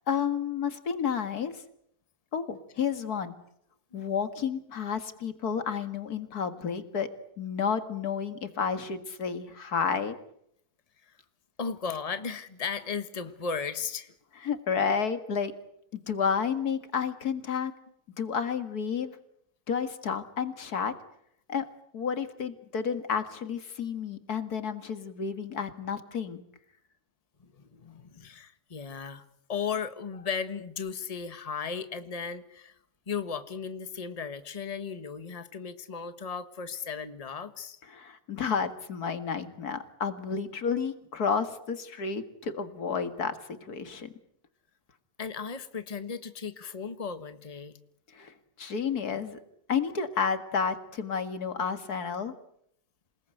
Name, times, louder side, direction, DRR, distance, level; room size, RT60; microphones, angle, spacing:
voice 1, 0.1-1.6 2.3-3.4 3.9-7.1 7.4-10.2 14.4-15.6 15.9-17.7 18.2-19.2 19.7-20.9 21.5-21.7 21.9-26.4 37.9-44.1 48.1-49.4 49.7-52.3, left 6 dB, 85° left, 10 dB, 2.4 m, -31 dB
voice 2, 11.6-14.1 27.4-32.7 33.1-37.8 45.2-47.8, left 6 dB, 25° left, 11 dB, 1.4 m, -36 dB
28.0 x 19.5 x 9.1 m, 0.74 s
omnidirectional pair, 1.6 m